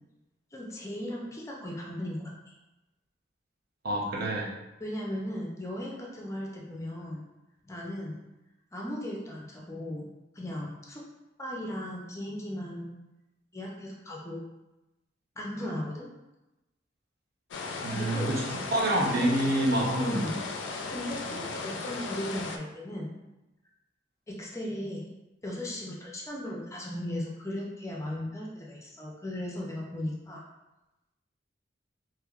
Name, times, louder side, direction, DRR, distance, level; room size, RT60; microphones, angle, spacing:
voice 1, 0.5-2.6 4.8-7.2 7.6-8.2 8.7-10.1 10.3-11.0 11.4-12.9 13.5-14.4 15.4-16.1 17.9-18.4 20.1-20.4 20.9-23.1 24.3-25.1 25.4-30.4, left 1 dB, 15° left, -2 dB, 0.4 m, -37 dB
voice 2, 3.8-4.5 17.8-18.4 18.7-20.3, right 1 dB, 55° right, -3 dB, 0.7 m, -27 dB
sound 1, 17.5-22.6, left 3 dB, 75° left, 0.3 m, -36 dB
3.2 x 3.0 x 2.4 m, 1.0 s
head